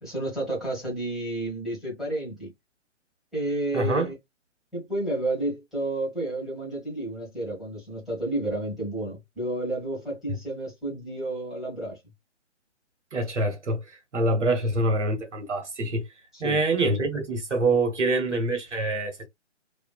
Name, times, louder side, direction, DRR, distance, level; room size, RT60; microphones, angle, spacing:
voice 1, 0.0-2.5 3.3-4.1 4.7-12.0 16.3-16.6, right 1 dB, ahead, 1.5 m, -31 dB
voice 2, 3.7-4.1 13.1-16.1 16.4-19.3, right 2 dB, 75° right, 1.3 m, -25 dB
3.0 x 2.7 x 2.3 m
figure-of-eight pair, 135°, 36 cm